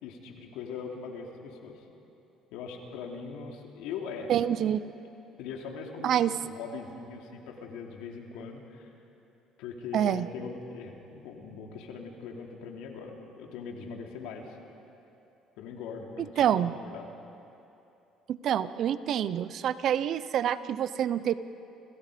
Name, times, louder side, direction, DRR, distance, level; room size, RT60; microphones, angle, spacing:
voice 1, 0.0-1.8 2.5-4.3 5.4-6.1 6.4-8.9 9.6-14.6 15.6-17.0, left 5 dB, 85° left, 1 dB, 3.4 m, -41 dB
voice 2, 4.3-4.9 6.0-6.3 9.9-10.3 16.2-16.7 18.3-21.3, right 10 dB, 60° right, 14 dB, 0.8 m, -27 dB
29.5 x 29.5 x 5.3 m, 2.9 s
cardioid pair, 95°, 0 cm